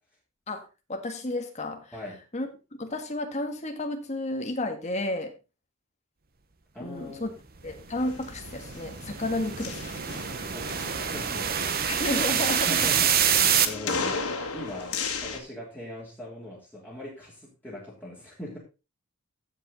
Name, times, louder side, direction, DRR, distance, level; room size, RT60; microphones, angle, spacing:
voice 1, 0.9-1.9 2.3-2.5 2.8-5.3 6.8-7.3 7.6-10.1 11.9-12.9, left 1 dB, 30° left, 4 dB, 1.8 m, -32 dB
voice 2, 6.7-7.3 10.5-11.9 12.6-14.2 14.5-18.6, left 1 dB, 10° left, -7 dB, 3.2 m, -40 dB
sound 1, 7.7-13.7, right 8 dB, 45° right, 1.0 m, -26 dB
sound 2, 8.0-15.4, left 4 dB, 90° left, 1.9 m, -36 dB
15.0 x 5.3 x 4.0 m, 0.29 s
head